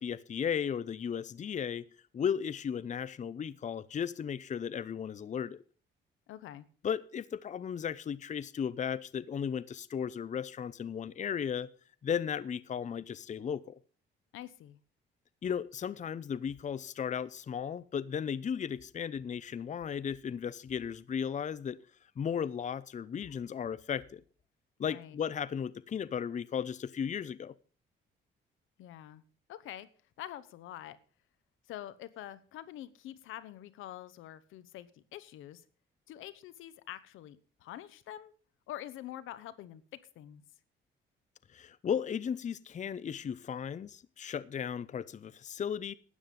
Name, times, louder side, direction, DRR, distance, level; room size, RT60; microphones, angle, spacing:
voice 1, 0.0-1.9 2.1-5.6 6.8-11.7 12.0-13.8 15.4-21.8 22.2-24.2 24.8-27.5 41.5-45.9, left 7 dB, 40° left, 0.6 m, -35 dB
voice 2, 6.3-6.7 14.3-14.8 24.8-25.2 28.8-29.2 29.5-29.9 30.2-31.0 31.7-35.6 36.1-38.3 38.7-40.4, left 13 dB, 90° left, 1.0 m, -46 dB
13.0 x 9.3 x 5.3 m
cardioid pair, 90°, 20 cm